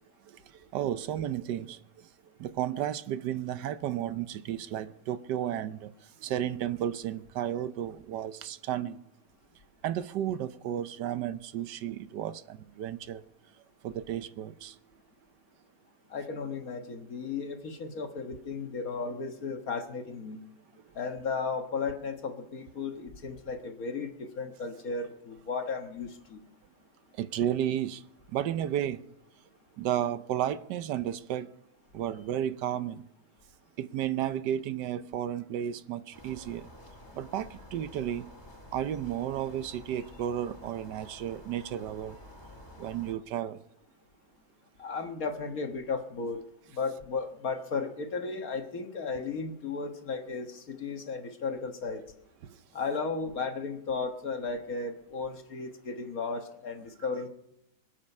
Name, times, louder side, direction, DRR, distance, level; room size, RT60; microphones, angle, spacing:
voice 1, 0.7-1.8 2.4-5.9 6.2-9.0 9.8-13.2 13.8-14.8 27.2-28.0 28.3-29.0 29.8-31.5 31.9-33.0 33.8-36.7 37.1-38.3 38.7-42.2 42.8-43.6 52.4-52.6, right 11 dB, 80° right, 1.3 m, -33 dB
voice 2, 16.1-20.4 20.9-26.4 44.8-46.4 46.7-52.0 52.7-57.3, left 4 dB, 60° left, 1.8 m, -35 dB
sound 1, 36.1-43.2, left 1 dB, 15° left, 2.5 m, -50 dB
25.0 x 8.6 x 5.4 m
omnidirectional pair, 1.8 m